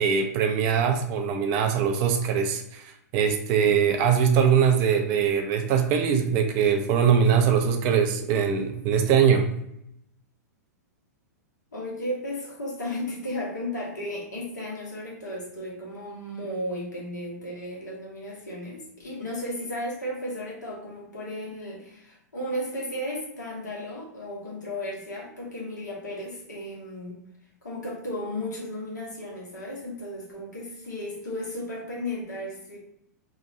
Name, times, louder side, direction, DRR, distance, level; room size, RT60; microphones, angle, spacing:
voice 1, 0.0-9.5, right 7 dB, 40° right, 5 dB, 0.4 m, -22 dB
voice 2, 11.7-27.2 27.6-32.8, left 1 dB, 80° left, -3 dB, 1.0 m, -34 dB
2.8 x 2.2 x 2.5 m, 0.76 s
hypercardioid pair, 105°, 9 cm